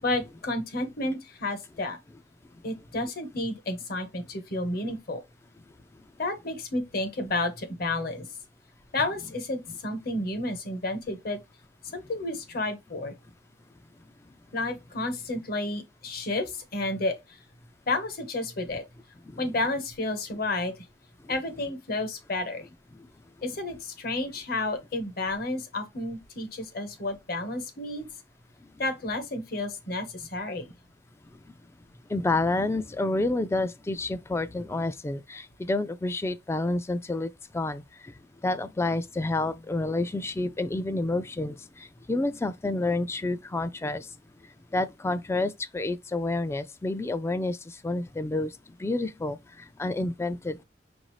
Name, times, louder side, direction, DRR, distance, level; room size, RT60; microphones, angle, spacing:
voice 1, 0.0-2.0 2.6-5.2 6.2-8.3 8.9-11.4 11.9-13.1 14.5-17.4 17.9-18.8 19.4-20.9 21.3-22.7 23.4-28.1 28.8-30.7, left 2 dB, 55° left, 1.0 m, -31 dB
voice 2, 32.1-37.3 37.5-38.1 38.4-44.1 44.7-48.5 48.8-49.4 49.8-50.6, left 2 dB, 15° left, 0.3 m, -29 dB
6.2 x 2.6 x 3.1 m
head